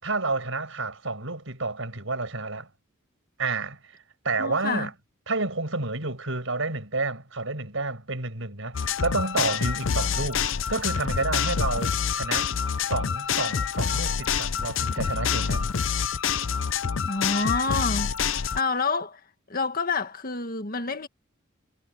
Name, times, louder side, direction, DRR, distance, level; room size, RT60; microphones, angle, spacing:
voice 1, 0.0-2.7 3.4-4.0 4.2-4.9 5.3-10.4 10.7-12.5 12.9-15.7, right 3 dB, 75° right, 5.7 m, -30 dB
voice 2, 4.4-4.9 17.0-18.1 18.5-19.2 19.5-21.1, left 4 dB, 45° left, 1.8 m, -28 dB
sound 1, 8.7-18.6, left 7 dB, 65° left, 0.6 m, -27 dB
head